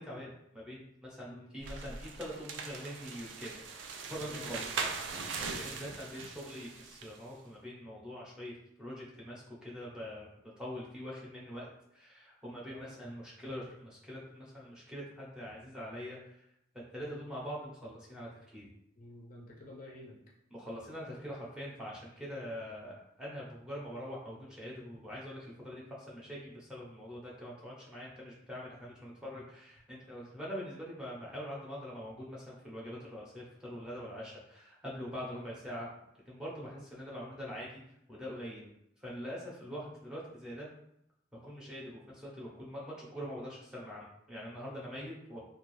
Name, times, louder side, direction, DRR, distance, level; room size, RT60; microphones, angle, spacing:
voice 1, 0.0-3.6 4.1-4.8 5.6-8.5 8.8-10.3 10.6-16.5 16.7-18.7 20.5-35.9 36.3-37.8 38.1-38.7 39.0-40.7 41.3-45.4, equal, 5° right, -5 dB, 0.6 m, -44 dB
sound 1, 1.6-7.2, right 5 dB, 75° right, 0.4 m, -40 dB
voice 2, 4.2-4.6 5.4-5.8 12.7-12.9 17.1-17.2 19.0-20.2 35.3-35.5 44.8-44.9, left 1 dB, 45° left, -2 dB, 0.5 m, -49 dB
2.6 x 2.3 x 3.0 m, 0.77 s
head